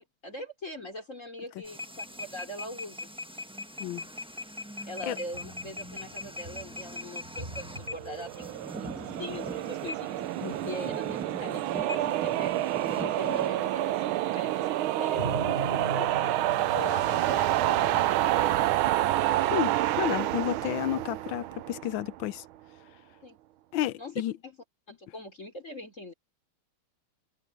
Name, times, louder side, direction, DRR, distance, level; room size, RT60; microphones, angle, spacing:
voice 1, 0.0-3.1 4.8-10.2 10.6-12.5 12.9-14.7 15.0-16.1 16.5-18.5 23.2-23.4 24.0-24.1 24.4-24.6 24.9-26.1, left 1 dB, 35° left, 4.3 m, -42 dB
sound 1, 1.6-13.5, left 1 dB, 5° right, 0.4 m, -41 dB
sound 2, 2.0-2.1 5.3-11.1 11.4-11.7 12.6-19.3, right 1 dB, 25° right, 4.6 m, -43 dB
sound 3, 7.9-22.2, right 14 dB, 85° right, 1.5 m, -28 dB
voice 2, 19.5-22.4 23.7-24.3, left 13 dB, 75° left, 1.3 m, -31 dB
omnidirectional pair, 2.3 m